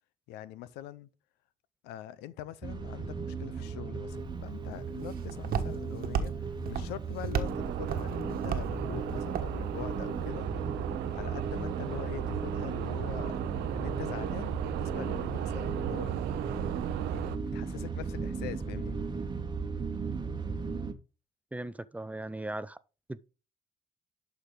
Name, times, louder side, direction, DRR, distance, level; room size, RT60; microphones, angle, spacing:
voice 1, 0.3-1.1 1.8-10.5 11.1-13.4 13.7-16.2 17.0-19.0, left 13 dB, 90° left, 0.7 m, -43 dB
sound 1, 2.6-20.9, right 4 dB, 25° right, 1.1 m, -36 dB
Walk footsteps, 4.1-10.3, right 7 dB, 65° right, 1.2 m, -36 dB
sound 2, 7.4-17.4, right 13 dB, 80° right, 0.6 m, -36 dB
voice 2, 21.5-22.8 23.1-23.2, right 1 dB, 10° right, 0.5 m, -38 dB
11.5 x 4.8 x 3.8 m
cardioid pair, 85°, 17 cm